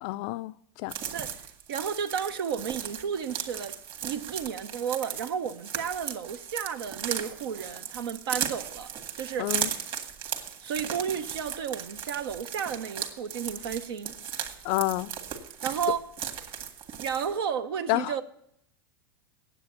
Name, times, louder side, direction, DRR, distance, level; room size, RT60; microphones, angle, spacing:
voice 1, 0.0-0.9 9.4-9.7 14.6-15.1 17.9-18.1, left 18 dB, 55° left, 0.4 m, -29 dB
sound 1, 0.9-17.4, right 8 dB, 40° right, 1.8 m, -36 dB
voice 2, 1.7-3.7 4.0-9.6 10.6-14.1 15.6-16.0 17.0-18.2, right 7 dB, 75° right, 0.8 m, -32 dB
9.0 x 8.0 x 8.4 m
hypercardioid pair, 100°, 13 cm